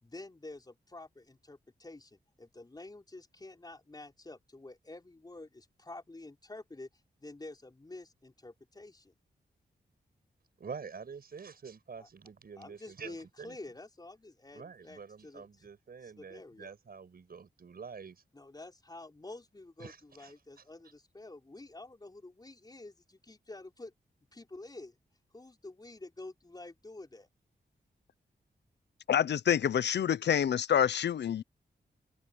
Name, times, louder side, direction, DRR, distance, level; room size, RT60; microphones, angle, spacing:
voice 1, 0.0-6.9 7.2-9.1 12.0-12.1 12.6-15.7 16.0-16.7 18.3-23.9 24.3-24.9 25.3-27.3, left 2 dB, 25° left, 4.9 m, -49 dB
voice 2, 10.6-13.6 14.5-18.2 19.8-20.3, right 5 dB, 60° right, 6.2 m, -47 dB
voice 3, 29.1-31.4, left 9 dB, 85° left, 0.6 m, -27 dB
open air
wide cardioid pair, 130°, 17 cm